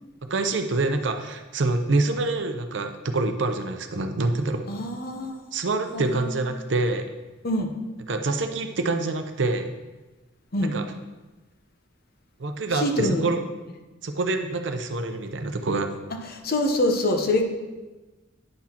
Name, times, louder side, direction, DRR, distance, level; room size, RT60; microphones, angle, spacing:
voice 1, 0.2-4.6 5.5-7.1 8.1-9.7 10.6-10.8 12.4-13.4 14.0-15.9, right 2 dB, 65° right, 7 dB, 0.6 m, -26 dB
voice 2, 4.7-5.4 5.9-6.4 7.4-7.7 10.5-10.7 12.7-13.2 16.3-17.4, left 1 dB, 50° left, 4 dB, 0.8 m, -25 dB
9.9 x 6.1 x 2.9 m, 1.2 s
head